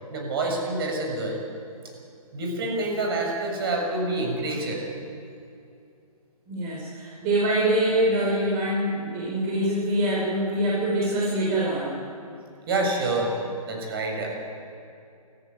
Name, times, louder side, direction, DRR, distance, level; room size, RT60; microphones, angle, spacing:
voice 1, 0.1-1.4 2.3-4.8 12.7-13.3 13.7-14.3, right 2 dB, 40° right, 1 dB, 6.8 m, -27 dB
voice 2, 6.5-12.0, right 1 dB, 25° right, -4 dB, 5.0 m, -24 dB
27.5 x 15.5 x 9.4 m, 2.5 s
figure-of-eight pair, 130°, 19 cm